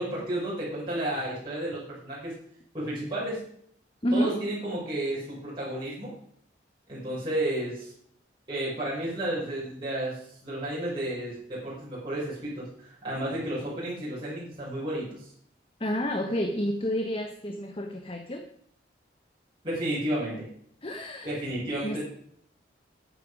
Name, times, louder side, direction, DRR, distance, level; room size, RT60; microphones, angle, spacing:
voice 1, 0.0-2.3 2.7-3.4 4.1-6.1 6.9-7.9 8.5-15.3 19.6-20.5 21.2-22.0, right 1 dB, 25° right, -8 dB, 5.4 m, -32 dB
voice 2, 4.0-4.4 15.8-18.4 20.8-21.3 21.8-22.0, equal, 30° left, 4 dB, 1.1 m, -29 dB
14.0 x 9.3 x 4.8 m, 0.66 s
head